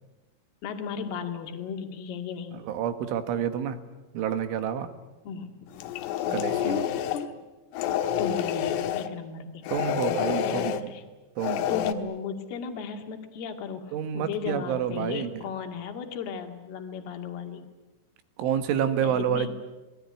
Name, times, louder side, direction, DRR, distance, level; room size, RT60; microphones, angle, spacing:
voice 1, 0.6-2.6 5.3-5.7 6.7-7.4 8.2-9.7 10.3-11.0 11.7-17.7 19.0-19.5, left 6 dB, 55° left, 5 dB, 3.8 m, -35 dB
voice 2, 2.7-3.8 4.1-4.9 6.3-6.8 9.7-10.9 11.4-11.6 13.9-15.4 18.4-19.5, right 8 dB, 75° right, 9 dB, 3.9 m, -28 dB
sound 1, 5.7-7.3 7.7-9.1 9.6-10.8 11.4-11.9, left 10 dB, 80° left, 3.8 m, -28 dB
29.0 x 20.5 x 9.8 m, 1.1 s
omnidirectional pair, 5.8 m